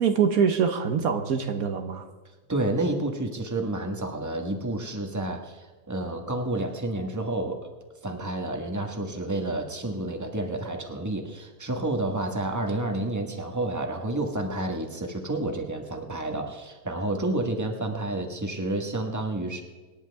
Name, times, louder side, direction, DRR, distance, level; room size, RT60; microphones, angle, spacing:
voice 1, 0.0-2.1, right 6 dB, 75° right, 7 dB, 1.4 m, -24 dB
voice 2, 2.5-7.6 8.0-19.6, right 2 dB, 10° right, 3 dB, 1.5 m, -30 dB
26.5 x 10.5 x 3.5 m, 1.3 s
omnidirectional pair, 1.6 m